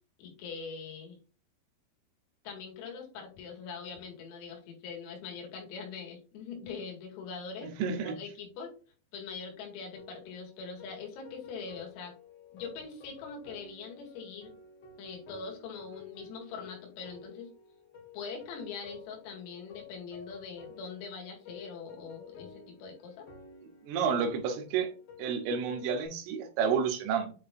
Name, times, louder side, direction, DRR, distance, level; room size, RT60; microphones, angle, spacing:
voice 1, 0.2-1.2 2.4-7.7 8.0-8.7 9.1-12.1 12.5-14.5 15.0-17.5 18.1-23.3, left 5 dB, 90° left, 4.7 m, -42 dB
voice 2, 7.8-8.2 23.8-24.9 25.2-27.3, right 6 dB, 75° right, 3.4 m, -30 dB
sound 1, 10.0-26.1, left 5 dB, 65° left, 1.5 m, -52 dB
9.0 x 4.4 x 2.6 m
omnidirectional pair, 5.9 m